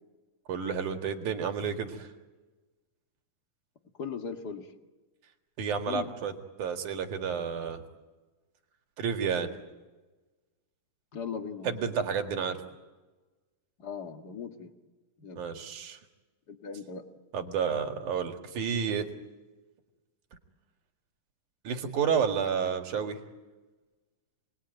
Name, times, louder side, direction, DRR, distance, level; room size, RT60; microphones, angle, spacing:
voice 1, 0.5-2.1 5.6-6.3 6.6-7.8 9.0-9.5 11.6-12.6 15.4-16.0 17.3-19.1 21.6-23.2, right 6 dB, 65° right, 4 dB, 3.4 m, -30 dB
voice 2, 4.0-4.7 5.9-6.1 11.1-12.1 13.8-14.7 15.2-15.4 16.5-17.0 22.9-23.0, left 6 dB, 40° left, 5 dB, 1.7 m, -38 dB
29.0 x 21.0 x 9.1 m, 1.2 s
omnidirectional pair, 3.9 m